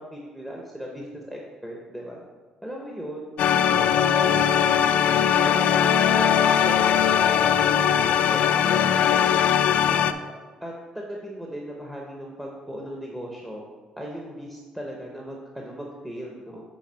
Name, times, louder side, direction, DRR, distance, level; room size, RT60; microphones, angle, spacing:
voice 1, 0.0-2.2 2.6-3.3 3.7-4.7 5.3-9.3 9.9-10.3 10.6-13.6 14.0-16.6, equal, 5° right, -1 dB, 0.7 m, -37 dB
sound 1, 3.4-10.1, left 9 dB, 60° left, 0.3 m, -20 dB
6.9 x 3.8 x 6.2 m, 1.4 s
cardioid pair, 155°, 2 cm